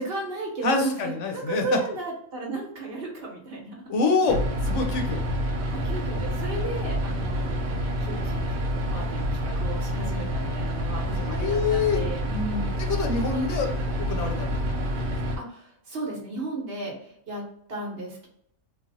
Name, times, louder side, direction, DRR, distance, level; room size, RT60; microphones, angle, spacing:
voice 1, 0.0-3.9 5.7-12.7 15.4-17.4 17.7-18.3, right 2 dB, 55° right, -1 dB, 0.9 m, -34 dB
voice 2, 0.6-1.8 3.9-5.2 11.1-12.0 12.9-13.7 14.0-14.5 15.0-15.1, left 4 dB, 70° left, 4 dB, 0.9 m, -26 dB
sound 1, 4.3-15.4, equal, 90° right, 1.0 m, -28 dB
3.2 x 2.0 x 2.6 m, 0.68 s
omnidirectional pair, 1.4 m